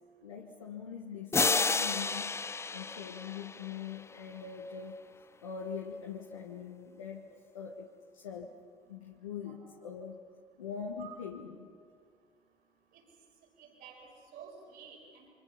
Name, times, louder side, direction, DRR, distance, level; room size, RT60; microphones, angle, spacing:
voice 1, 0.2-8.5 8.9-10.2 10.6-11.7, left 6 dB, 85° left, 0 dB, 1.4 m, -43 dB
sound 1, 1.3-4.0, left 4 dB, 15° left, 0.5 m, -31 dB
voice 2, 13.6-15.3, right 7 dB, 65° right, 1 dB, 5.0 m, -51 dB
29.0 x 24.5 x 5.7 m, 2.3 s
hypercardioid pair, 55°, 17 cm